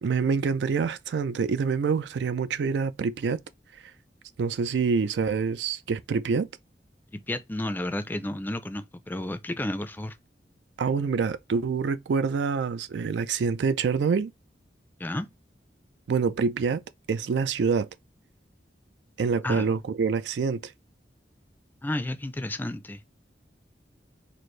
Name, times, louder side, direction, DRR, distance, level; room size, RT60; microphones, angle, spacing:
voice 1, 0.0-3.4 4.4-6.5 10.8-14.3 16.1-16.8 17.1-17.9 19.2-20.7, right 5 dB, 75° right, 0.4 m, -26 dB
voice 2, 7.3-10.2 15.0-15.3 19.4-19.7 21.8-23.0, left 1 dB, 10° left, 0.4 m, -32 dB
4.3 x 2.4 x 3.1 m
head